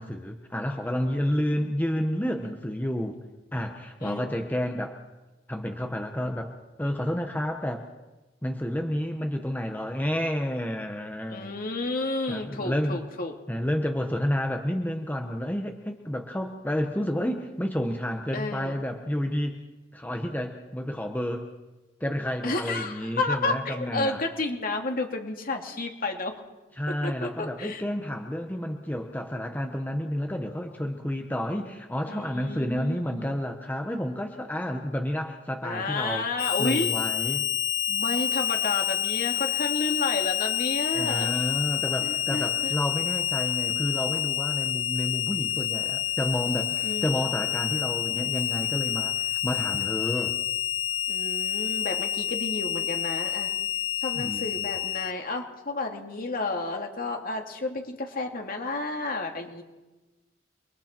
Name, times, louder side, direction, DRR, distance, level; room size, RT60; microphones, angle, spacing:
voice 1, 0.0-3.2 3.5-5.0 5.5-6.5 6.8-7.9 8.4-11.5 12.3-13.0 13.5-19.6 19.9-21.5 22.0-24.2 26.8-36.3 36.6-37.5 40.9-50.3 54.1-54.7, equal, 10° left, 3 dB, 1.2 m, -30 dB
voice 2, 4.0-4.3 11.3-13.3 18.3-18.8 22.4-26.3 26.9-27.8 32.1-33.4 35.6-36.9 37.9-41.3 42.0-42.7 46.8-47.2 51.1-53.5 54.0-59.6, left 2 dB, 50° left, 3 dB, 2.6 m, -31 dB
Harmonica, 36.4-55.1, left 12 dB, 80° left, 0.7 m, -28 dB
29.5 x 22.5 x 4.5 m, 1.1 s
head